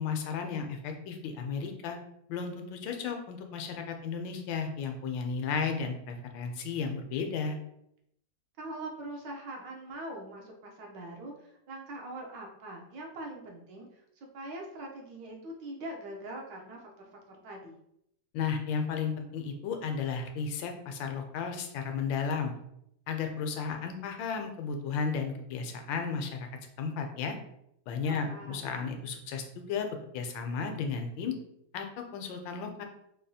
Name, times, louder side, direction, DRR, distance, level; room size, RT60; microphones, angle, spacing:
voice 1, 0.0-2.0 2.3-7.6 18.3-22.5 23.1-26.5 26.8-27.4 27.9-31.3 31.7-32.8, left 5 dB, 85° left, 4 dB, 1.3 m, -34 dB
voice 2, 8.6-17.8 28.1-28.7, right 1 dB, 75° right, 0 dB, 1.4 m, -43 dB
4.8 x 2.3 x 2.7 m, 0.76 s
omnidirectional pair, 2.0 m